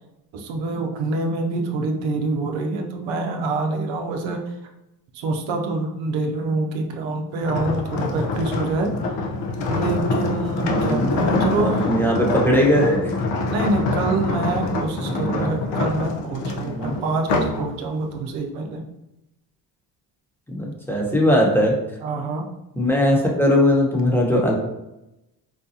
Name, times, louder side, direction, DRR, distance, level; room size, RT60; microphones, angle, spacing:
voice 1, 0.3-4.4 5.2-9.0 9.7-12.0 13.5-18.8 22.0-22.4, right 3 dB, 80° right, 3 dB, 0.6 m, -26 dB
sound 1, 7.4-17.6 18.1-18.4, left 3 dB, 70° left, 0.7 m, -25 dB
voice 2, 10.6-11.3 11.6-13.1 15.0-15.5 16.6-16.9 20.5-21.8 22.8-24.5, left 1 dB, 5° left, -2 dB, 1.0 m, -20 dB
4.1 x 2.2 x 2.7 m, 0.91 s
supercardioid pair, 65°, 45 cm